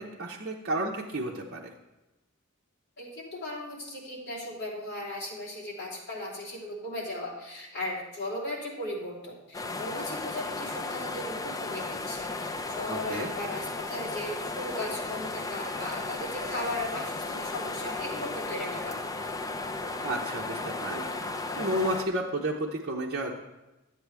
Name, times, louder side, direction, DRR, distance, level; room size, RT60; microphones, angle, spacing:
voice 1, 0.0-1.7 12.9-13.3 20.0-21.2 21.6-23.3, right 1 dB, 50° right, -3 dB, 0.8 m, -32 dB
voice 2, 3.0-19.0, left 1 dB, 50° left, -5 dB, 3.1 m, -37 dB
sound 1, 9.5-22.0, left 3 dB, 15° left, 0.5 m, -35 dB
11.5 x 8.2 x 3.4 m, 1.0 s
head